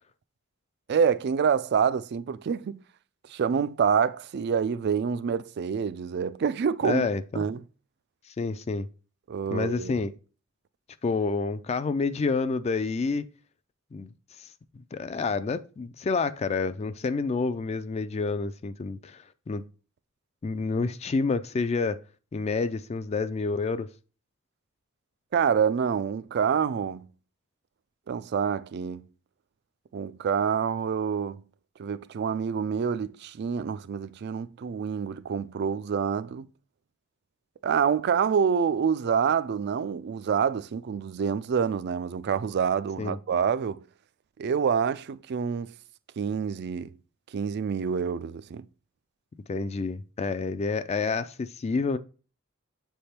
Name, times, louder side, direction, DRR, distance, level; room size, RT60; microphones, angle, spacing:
voice 1, 0.9-2.8 3.3-7.1 7.4-7.6 9.3-10.0 25.3-27.1 28.1-29.1 29.9-31.4 31.8-36.5 37.6-43.8 44.4-45.7 46.2-46.9 47.3-48.6, right 7 dB, 55° right, 0.3 m, -27 dB
voice 2, 6.8-7.5 8.3-8.9 9.5-10.1 11.0-13.3 13.9-14.1 14.4-19.6 20.4-22.0 22.3-23.9 43.0-43.2 49.5-52.0, left 4 dB, 30° left, 0.3 m, -29 dB
7.7 x 3.4 x 4.3 m
head